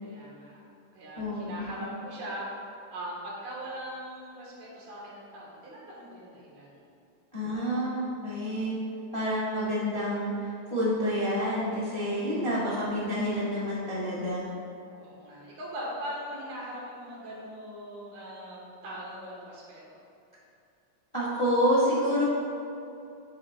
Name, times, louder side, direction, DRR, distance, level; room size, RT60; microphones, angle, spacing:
voice 1, 0.0-0.6 0.9-6.8 7.4-7.7 12.5-13.0 14.9-20.0, equal, 80° right, -4 dB, 2.9 m, -41 dB
voice 2, 1.2-1.8 7.3-8.7 9.1-14.4 21.1-22.2, equal, 35° left, -9 dB, 0.4 m, -28 dB
8.8 x 7.5 x 2.3 m, 2.7 s
omnidirectional pair, 3.4 m